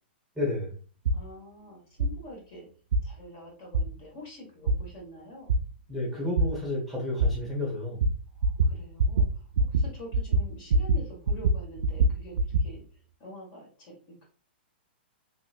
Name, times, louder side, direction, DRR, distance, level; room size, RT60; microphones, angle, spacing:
voice 1, 0.4-0.8 5.9-8.1, left 1 dB, ahead, -4 dB, 1.0 m, -31 dB
voice 2, 1.1-2.7 3.0-5.5 8.4-12.8 13.2-14.3, equal, 40° left, -1 dB, 1.4 m, -46 dB
sound 1, 1.1-1.2 2.0-2.1 2.9-3.0 3.7-3.8 4.7-4.8 5.5-5.6 6.4-6.5 7.2-7.3 8.0-8.1 8.4-8.7 9.0-9.3 9.5-9.9 10.1-11.0 11.3-12.7, right 2 dB, 85° right, 0.4 m, -23 dB
3.1 x 2.9 x 2.4 m, 0.40 s
hypercardioid pair, 150°, 6 cm